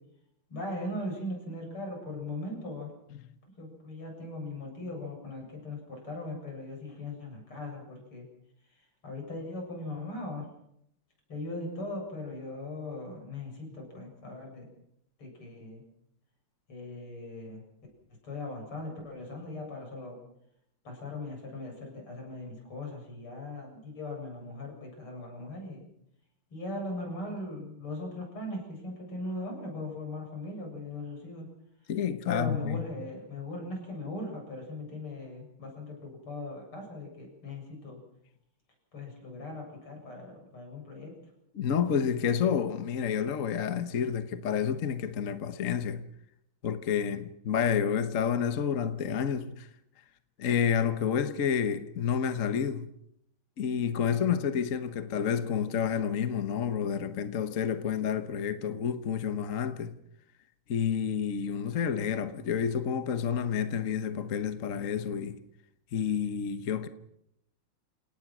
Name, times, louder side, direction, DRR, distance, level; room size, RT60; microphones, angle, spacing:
voice 1, 0.5-2.9 3.6-8.3 9.0-10.5 11.3-14.7 15.2-15.8 16.7-17.6 18.2-20.2 20.8-25.8 26.5-31.5 32.3-38.0 38.9-41.1, left 2 dB, 80° left, 8.4 m, -39 dB
voice 2, 31.9-32.8 41.5-46.0 46.6-49.7 50.4-52.9 53.6-59.9 60.7-65.4 65.9-66.9, left 7 dB, 45° left, 1.2 m, -29 dB
29.0 x 18.0 x 6.2 m
omnidirectional pair, 2.4 m